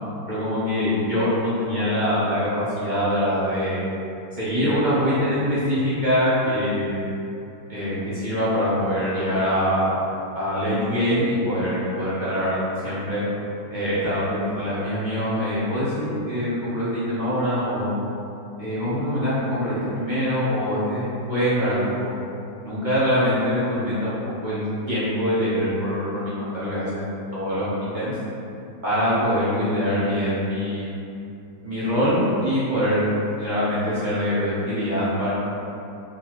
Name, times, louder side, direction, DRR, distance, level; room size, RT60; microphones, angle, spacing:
voice 1, 0.3-3.8 4.3-7.0 7.7-9.9 10.3-12.6 12.8-13.2 13.7-17.9 18.6-22.1 22.6-24.1 24.4-24.6 24.9-28.1 28.8-30.9 31.6-33.1 33.4-35.3, equal, 40° right, -12 dB, 0.8 m, -24 dB
3.9 x 2.9 x 3.0 m, 2.8 s
omnidirectional pair, 1.8 m